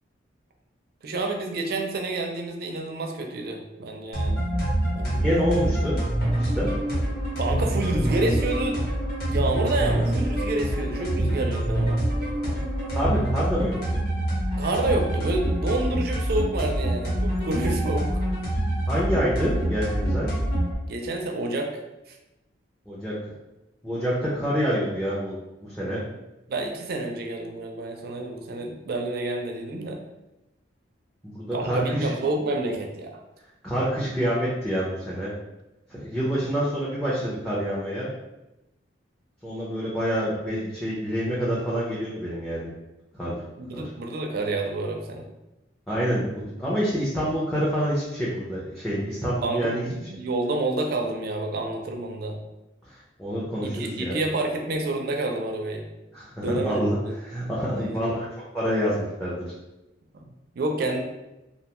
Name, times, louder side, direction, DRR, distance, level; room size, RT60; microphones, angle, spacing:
voice 1, 1.0-4.4 4.9-5.3 7.4-8.8 9.3-12.0 14.6-18.1 20.9-21.8 22.1-22.2 26.5-30.0 31.5-33.2 43.6-45.2 49.4-52.4 53.7-55.8 56.4-57.1 57.7-58.1 60.5-61.0, right 2 dB, 55° right, 3 dB, 0.4 m, -28 dB
sound 1, 4.1-20.7, right 1 dB, 55° left, 1.0 m, -26 dB
voice 2, 5.2-6.0 6.4-6.7 12.9-13.7 18.9-20.3 22.9-23.3 23.8-26.0 31.2-32.1 33.6-35.3 35.9-38.1 39.4-42.7 43.1-43.3 43.7-43.8 45.9-49.9 52.9-54.1 56.1-58.2 58.5-59.4, equal, 5° left, -8 dB, 0.4 m, -27 dB
2.6 x 2.2 x 2.9 m, 0.96 s
head